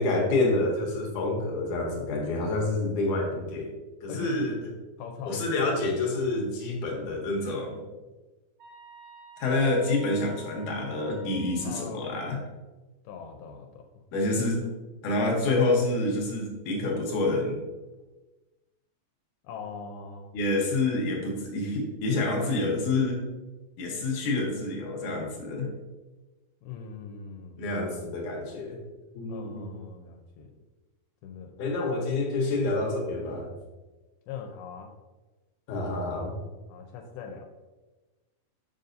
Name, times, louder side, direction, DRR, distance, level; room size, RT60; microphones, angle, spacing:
voice 1, 0.0-3.7 4.0-4.5 5.3-7.8 9.4-12.4 14.1-14.6 15.0-17.6 20.3-23.3 23.8-25.7 27.6-28.8 29.1-29.7 31.6-33.5 35.7-36.3, left 2 dB, 70° left, -1 dB, 2.1 m, -27 dB
voice 2, 4.1-4.6 5.0-5.8 6.1-6.2 11.6-12.4 13.1-13.9 19.4-20.3 26.6-28.2 29.3-30.5 31.2-31.6 34.3-34.9 36.7-37.5, left 5 dB, 85° left, 3 dB, 2.5 m, -41 dB
sound 1, 8.6-11.9, right 3 dB, 70° right, 0.8 m, -50 dB
7.0 x 5.3 x 2.6 m, 1.2 s
omnidirectional pair, 4.3 m